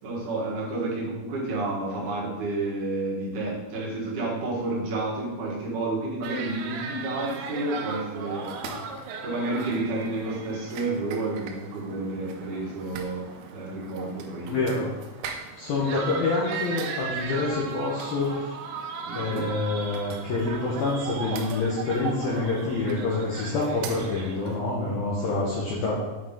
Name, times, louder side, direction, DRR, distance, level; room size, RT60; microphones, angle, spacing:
voice 1, 0.0-8.5 9.2-13.3 13.5-14.8 15.7-16.0 19.0-19.5, right 2 dB, 60° right, -5 dB, 2.3 m, -30 dB
sound 1, 6.2-24.6, right 5 dB, 85° right, 3.2 m, -37 dB
voice 2, 14.4-14.9 15.6-18.5 19.1-26.0, left 3 dB, 75° left, -5 dB, 2.2 m, -27 dB
8.9 x 5.0 x 3.7 m, 1.1 s
omnidirectional pair, 5.7 m